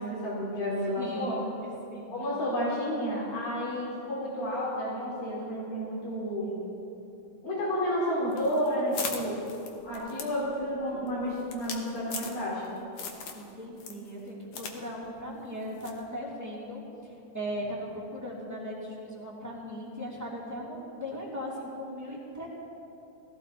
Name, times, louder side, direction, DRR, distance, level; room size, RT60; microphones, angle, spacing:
voice 1, 0.0-1.4 2.1-6.5 7.4-9.4 9.8-12.7, equal, 90° left, -8 dB, 6.4 m, -31 dB
voice 2, 1.0-2.2 9.2-9.3 13.3-22.5, equal, 5° right, -5 dB, 2.3 m, -38 dB
sound 1, 8.3-12.7 13.0-13.5 13.8-14.8 15.0-15.1 15.8-16.0, left 5 dB, 60° left, 2.0 m, -39 dB
19.0 x 15.0 x 4.3 m, 2.9 s
omnidirectional pair, 3.7 m